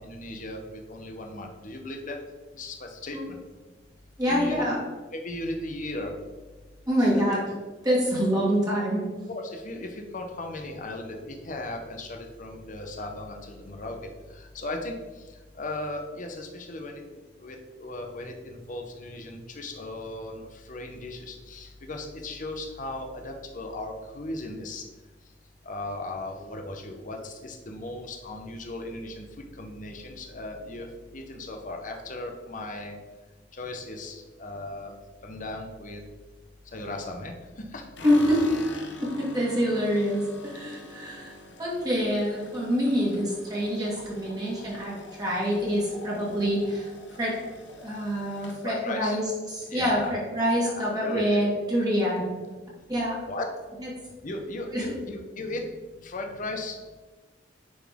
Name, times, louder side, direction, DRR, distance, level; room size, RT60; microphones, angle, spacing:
voice 1, 0.0-2.2 2.6-3.4 4.3-4.7 5.1-6.2 7.0-7.2 9.3-14.0 14.3-14.9 15.5-17.0 17.4-24.8 25.7-29.2 29.6-30.9 31.1-33.0 33.6-34.9 35.2-36.0 36.7-37.8 48.6-49.2 49.7-50.2 50.5-51.4 53.3-53.5 54.2-55.7 56.0-56.8, left 2 dB, 45° left, 3 dB, 0.9 m, -36 dB
voice 2, 4.2-4.8 6.9-7.4 7.8-9.1 38.0-38.5 39.0-41.3 41.6-46.9 47.2-47.3 47.8-52.3 52.9-53.2 53.8-53.9 54.7-54.9, equal, 20° right, -6 dB, 1.9 m, -26 dB
sound 1, 38.0-50.2 50.5-51.2 51.4-51.5 51.8-52.5, left 2 dB, 75° left, 0.9 m, -45 dB
9.5 x 4.1 x 3.6 m, 1.3 s
head